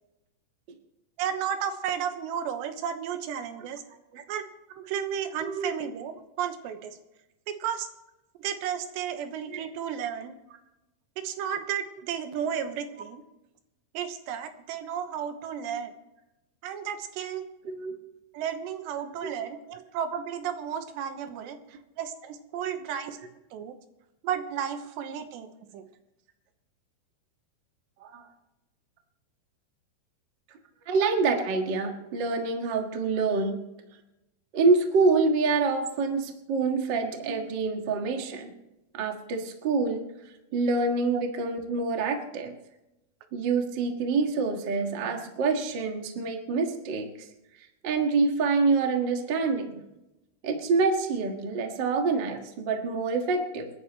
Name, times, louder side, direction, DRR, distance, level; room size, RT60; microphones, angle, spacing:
voice 1, 1.2-3.8 4.3-7.0 7.5-7.9 8.4-10.4 11.2-13.2 13.9-15.9 16.6-17.5 18.3-23.2 23.5-23.8 24.2-25.5 25.7-25.8 41.1-41.2, right 8 dB, 85° right, 7 dB, 3.3 m, -33 dB
voice 2, 5.4-5.7 9.5-9.6 17.6-17.9 19.2-19.3 28.0-28.3 30.9-33.6 34.5-38.5 38.9-40.0 40.5-42.5 43.3-47.1 47.8-49.8 50.4-53.7, right 4 dB, 65° right, 3 dB, 1.1 m, -26 dB
29.0 x 11.0 x 3.1 m, 0.95 s
omnidirectional pair, 5.0 m